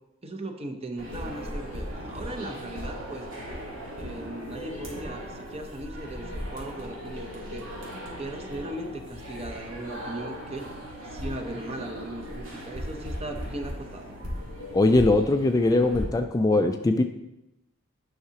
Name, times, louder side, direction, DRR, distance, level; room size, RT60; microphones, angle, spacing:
voice 1, 0.2-3.3 4.0-7.7 8.2-10.7 11.1-14.1, right 1 dB, 30° right, 5 dB, 0.7 m, -38 dB
sound 1, 1.0-16.0, equal, 90° right, 2.1 m, -37 dB
voice 2, 14.7-17.0, left 2 dB, 20° left, 6 dB, 0.3 m, -21 dB
9.6 x 5.7 x 2.9 m, 0.91 s
head